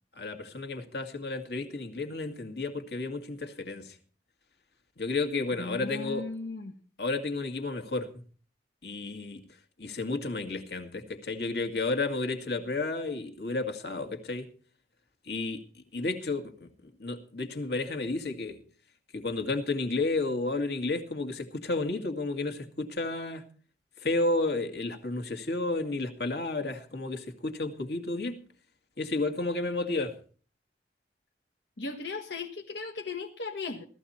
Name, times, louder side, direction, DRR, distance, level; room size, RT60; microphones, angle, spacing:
voice 1, 0.2-4.0 5.0-6.3 7.0-8.1 8.8-9.4 9.8-14.5 15.3-15.6 15.9-16.7 17.0-18.6 19.1-23.4 24.0-28.4 29.0-30.1, left 3 dB, 70° left, 2.1 m, -32 dB
voice 2, 5.6-6.7 31.8-33.8, left 3 dB, 90° left, 1.4 m, -37 dB
17.0 x 14.0 x 4.3 m
head